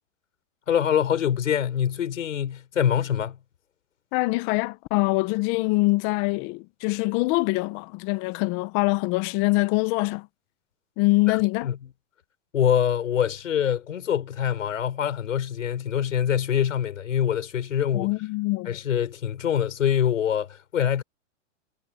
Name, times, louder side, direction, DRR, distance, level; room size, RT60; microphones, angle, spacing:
voice 1, 0.7-3.4 11.6-11.8 12.5-18.1 18.6-21.0, left 9 dB, 90° left, 6.0 m, -24 dB
voice 2, 4.1-10.3 11.0-11.7 17.9-18.7, left 23 dB, 30° left, 0.8 m, -24 dB
hypercardioid pair, 145°, 38 cm